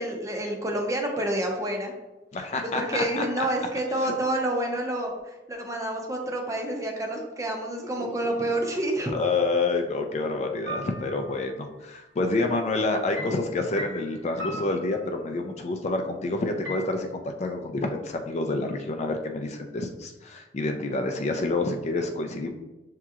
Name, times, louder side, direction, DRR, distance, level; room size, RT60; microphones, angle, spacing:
voice 1, 0.0-1.9 2.6-9.1, right 1 dB, 20° right, 1 dB, 0.6 m, -28 dB
voice 2, 2.3-3.5 4.0-4.1 7.9-8.3 9.1-22.5, left 3 dB, 40° left, 4 dB, 0.4 m, -28 dB
sound 1, 10.7-11.4 13.2-15.5 16.6-16.8, equal, 80° right, 1.1 m, -37 dB
6.0 x 2.8 x 2.4 m, 1.1 s
head